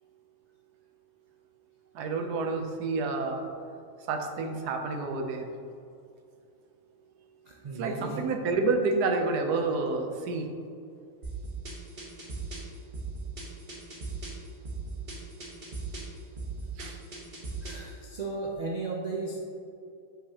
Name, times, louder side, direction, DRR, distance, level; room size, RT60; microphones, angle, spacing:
voice 1, 1.9-3.4 4.1-5.5 7.7-10.5 16.8-17.0, right 3 dB, 90° right, 4 dB, 1.2 m, -29 dB
voice 2, 7.5-8.2 17.6-19.4, right 3 dB, 65° right, -2 dB, 0.4 m, -35 dB
sound 1, 11.2-17.9, right 3 dB, 35° right, 1.0 m, -38 dB
6.5 x 5.9 x 2.8 m, 2.5 s
omnidirectional pair, 1.6 m